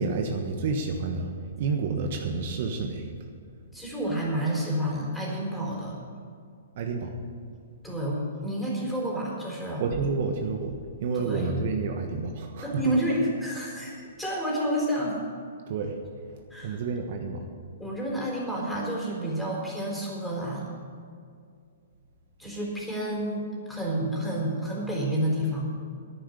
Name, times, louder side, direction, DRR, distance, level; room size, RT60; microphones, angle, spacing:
voice 1, 0.0-1.3 1.6-3.1 6.8-7.1 9.8-12.9 15.7-16.0 16.6-17.5, right 4 dB, 55° right, 3 dB, 1.3 m, -29 dB
voice 2, 3.7-6.0 7.8-9.8 11.1-11.6 12.6-15.2 16.5-16.8 17.8-20.7 22.4-25.7, right 1 dB, 5° left, -3 dB, 4.0 m, -29 dB
10.5 x 9.7 x 8.1 m, 2.2 s
hypercardioid pair, 125°, 0 cm